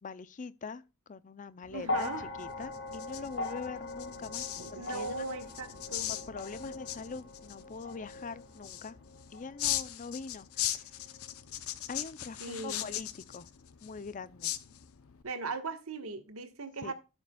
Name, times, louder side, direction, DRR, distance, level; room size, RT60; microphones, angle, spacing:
voice 1, 0.0-5.1 6.1-9.0 9.3-10.9 11.9-13.5 13.8-14.5 16.8-16.9, left 4 dB, 35° left, 0.5 m, -43 dB
sound 1, 1.6-15.2, left 12 dB, 75° left, 0.7 m, -40 dB
voice 2, 1.7-2.3 4.6-6.1 12.4-12.8 15.2-16.9, right 3 dB, 80° right, 1.4 m, -39 dB
sound 2, 1.8-10.2 11.2-11.3, left 2 dB, 55° left, 1.6 m, -41 dB
13.5 x 6.7 x 2.3 m
head